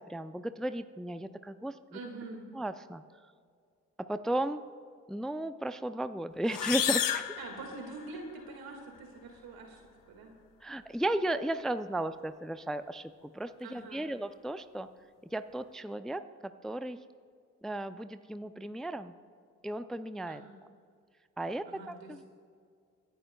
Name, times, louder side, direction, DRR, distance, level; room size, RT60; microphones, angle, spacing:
voice 1, 0.1-2.0 2.5-3.0 4.0-4.6 5.1-7.2 10.6-14.9 15.3-17.0 17.6-19.2 19.6-20.4 21.4-22.3, right 1 dB, ahead, 11 dB, 0.4 m, -35 dB
voice 2, 1.9-2.4 7.4-9.8 10.1-10.3 13.6-14.1 20.3-20.6 21.7-22.3, right 3 dB, 75° right, 2 dB, 2.1 m, -45 dB
sound 1, 6.5-8.3, left 11 dB, 65° left, 0.8 m, -32 dB
26.5 x 10.0 x 2.3 m, 2.2 s
hypercardioid pair, 45°, 37 cm